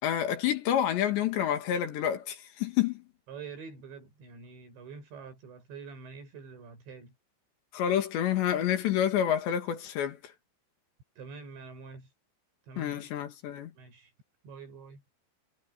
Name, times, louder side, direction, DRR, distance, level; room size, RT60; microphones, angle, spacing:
voice 1, 0.0-3.0 7.7-10.2 12.8-13.7, left 10 dB, 80° left, 4.4 m, -28 dB
voice 2, 3.3-7.1 11.2-12.1 12.7-13.0 13.8-14.1 14.4-15.0, right 5 dB, 90° right, 9.3 m, -46 dB
omnidirectional pair, 5.0 m